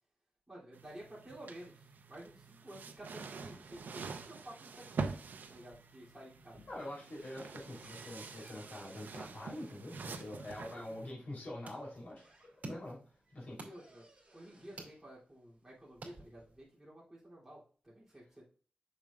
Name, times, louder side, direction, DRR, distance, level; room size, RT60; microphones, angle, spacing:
voice 1, 0.5-5.0 5.5-6.6 10.7-11.0 13.5-14.1 14.3-18.4, right 1 dB, 10° right, -7 dB, 3.1 m, -52 dB
sound 1, 0.7-11.1, right 4 dB, 90° right, 0.7 m, -46 dB
sound 2, 5.4-6.0 6.3-10.4 11.4-11.5 11.9-12.9 13.3-14.9 15.8-16.6, right 1 dB, 30° right, 3.3 m, -62 dB
voice 2, 6.7-13.0 13.3-13.6, left 1 dB, 60° left, -3 dB, 3.7 m, -45 dB
sound 3, 11.1-16.8, right 2 dB, 55° right, 2.5 m, -53 dB
7.1 x 6.3 x 2.5 m, 0.41 s
wide cardioid pair, 110°, 3 cm